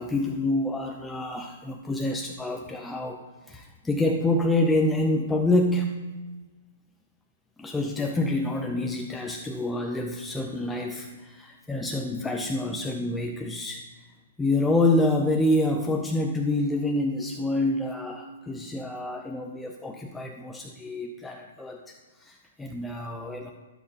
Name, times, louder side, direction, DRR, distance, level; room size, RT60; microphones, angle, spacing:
voice 1, 0.0-5.9 7.6-14.1 14.4-23.5, left 2 dB, 5° left, 2 dB, 0.5 m, -27 dB
15.0 x 7.6 x 2.9 m, 1.2 s
hypercardioid pair, 155°, 0 cm